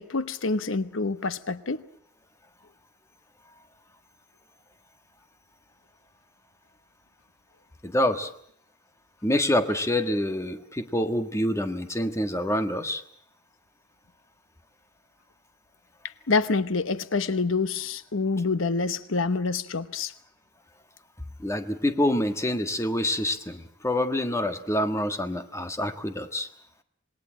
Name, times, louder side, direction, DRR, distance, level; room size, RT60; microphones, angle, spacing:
voice 1, 0.0-1.8 16.3-20.1, left 4 dB, 80° left, 1.0 m, -27 dB
voice 2, 7.8-8.3 9.2-13.0 21.4-26.5, left 1 dB, 15° left, 1.6 m, -26 dB
27.0 x 20.5 x 7.7 m
head